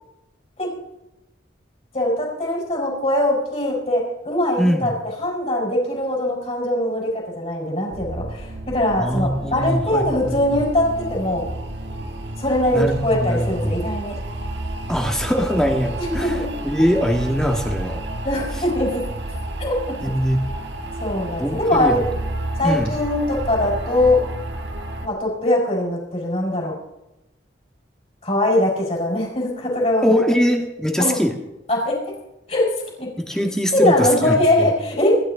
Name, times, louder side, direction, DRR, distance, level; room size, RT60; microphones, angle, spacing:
voice 1, 1.9-4.9 5.2-11.4 12.4-14.2 16.0-16.5 18.2-19.0 19.6-19.8 21.0-22.1 22.6-24.2 25.0-26.7 28.2-30.1 31.0-31.2 31.7-32.0 32.5-32.7 33.0-33.1 33.7-35.2, left 1 dB, 35° left, -3 dB, 5.2 m, -21 dB
voice 2, 4.6-4.9 9.0-10.6 12.7-13.8 14.9-16.4 16.6-18.0 20.0-20.4 21.4-22.1 22.6-22.9 30.0-31.4 33.2-34.7, equal, 5° left, 2 dB, 1.8 m, -22 dB
sound 1, 7.9-25.1, right 1 dB, 70° right, 1.8 m, -31 dB
26.0 x 12.5 x 3.9 m, 0.93 s
head